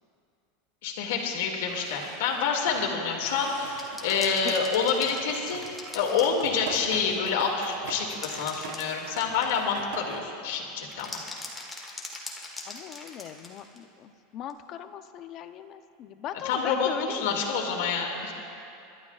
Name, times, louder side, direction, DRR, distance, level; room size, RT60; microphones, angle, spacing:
voice 1, 0.8-11.2 16.4-18.3, left 5 dB, 75° left, 1 dB, 2.1 m, -28 dB
sound 1, 1.7-10.2, right 6 dB, 90° right, 1.0 m, -43 dB
sound 2, 3.8-6.8 7.9-9.8 10.9-13.8 14.5-14.6, left 2 dB, 5° left, 1.4 m, -41 dB
voice 2, 12.6-17.4, left 10 dB, 35° left, 9 dB, 0.6 m, -39 dB
26.5 x 12.0 x 2.4 m, 2.7 s
supercardioid pair, 160°, 0 cm